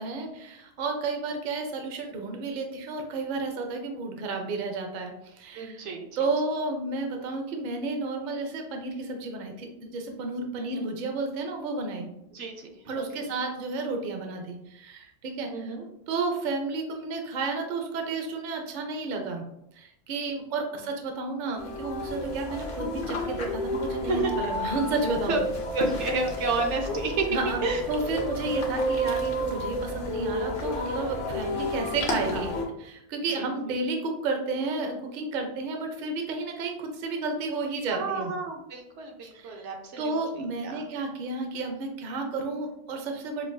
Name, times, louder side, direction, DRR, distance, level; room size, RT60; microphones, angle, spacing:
voice 1, 0.0-5.8 6.2-12.1 12.9-15.7 16.1-19.4 19.7-25.4 27.3-27.6 27.9-32.5 32.8-38.3 39.3-39.6 40.0-43.5, right 3 dB, 55° right, 3 dB, 0.6 m, -32 dB
voice 2, 5.6-6.1 10.6-10.9 12.3-13.2 15.5-15.8 24.1-24.3 25.3-25.4 25.7-27.3 27.6-27.8 31.4-31.6 32.3-32.5 33.4-33.5 37.9-40.8, right 3 dB, 70° right, 3 dB, 0.9 m, -31 dB
sound 1, 21.6-32.7, equal, 50° left, 0.7 m, -31 dB
5.3 x 2.4 x 2.2 m, 0.81 s
omnidirectional pair, 1.3 m